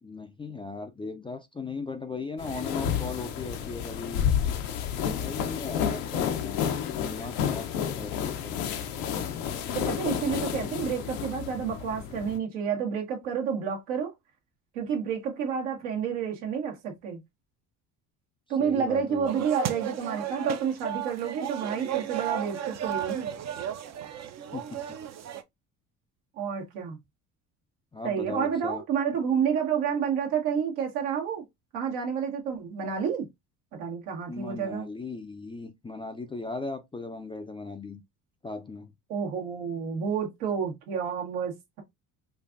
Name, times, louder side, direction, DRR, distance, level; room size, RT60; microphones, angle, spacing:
voice 1, 0.0-4.3 5.1-6.8 7.0-8.9 18.6-19.4 24.5-24.8 27.9-28.8 34.3-38.0 38.4-38.9, left 3 dB, 10° left, 0.4 m, -38 dB
sound 1, 2.4-12.4, left 8 dB, 75° left, 0.8 m, -30 dB
voice 2, 9.7-14.1 14.7-17.2 18.5-23.3 26.4-27.0 28.0-31.4 31.7-33.3 33.7-34.8 39.1-41.8, right 7 dB, 75° right, 1.3 m, -29 dB
sound 2, 19.2-25.4, right 10 dB, 35° right, 0.5 m, -34 dB
4.5 x 2.5 x 2.4 m
hypercardioid pair, 65°, 46 cm